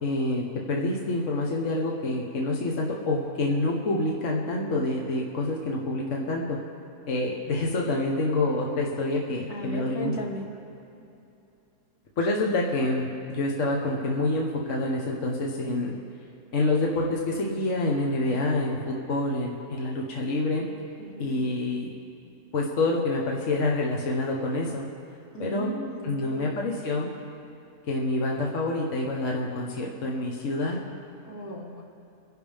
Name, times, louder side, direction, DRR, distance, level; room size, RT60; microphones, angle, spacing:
voice 1, 0.0-6.6 7.1-10.1 12.2-15.9 16.5-20.6 21.2-21.9 22.5-24.8 25.4-25.7 26.0-27.1 27.9-30.8, left 2 dB, 55° left, -1 dB, 1.5 m, -27 dB
voice 2, 9.5-10.4 21.0-21.4 25.3-26.6 31.2-31.8, right 1 dB, 70° left, -2 dB, 2.2 m, -36 dB
24.5 x 11.0 x 3.5 m, 2.8 s
omnidirectional pair, 1.6 m